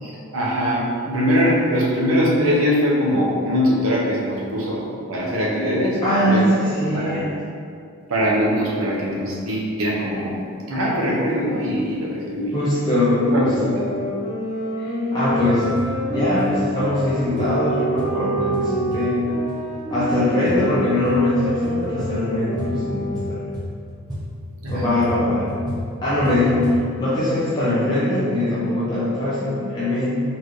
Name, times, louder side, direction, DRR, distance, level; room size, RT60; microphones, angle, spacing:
voice 1, 0.0-6.5 6.9-7.2 8.1-10.4 10.7-12.6 13.3-13.9 24.6-24.9, equal, 70° right, -4 dB, 0.8 m, -22 dB
voice 2, 6.0-7.3 12.5-13.8 14.8-15.7 16.1-19.2 19.9-23.4 24.7-25.5 26.0-30.2, left 1 dB, 20° left, -11 dB, 0.7 m, -21 dB
sound 1, 13.6-23.5, equal, 60° left, 1.2 m, -28 dB
sound 2, 15.2-26.9, equal, 20° right, 0.7 m, -34 dB
4.3 x 3.3 x 3.1 m, 2.4 s
head